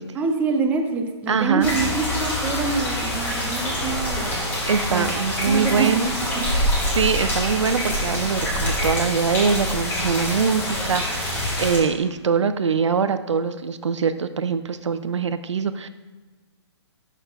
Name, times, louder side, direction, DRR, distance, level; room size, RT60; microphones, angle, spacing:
voice 1, 0.1-4.5 4.9-6.5, right 4 dB, 10° right, 3 dB, 0.5 m, -26 dB
voice 2, 1.3-1.7 4.7-6.1 7.0-15.9, right 6 dB, 85° right, 12 dB, 0.5 m, -23 dB
sound 1, 1.6-11.8, left 1 dB, 15° left, 2.1 m, -25 dB
11.0 x 6.0 x 2.3 m, 1.3 s
hypercardioid pair, 140°, 15 cm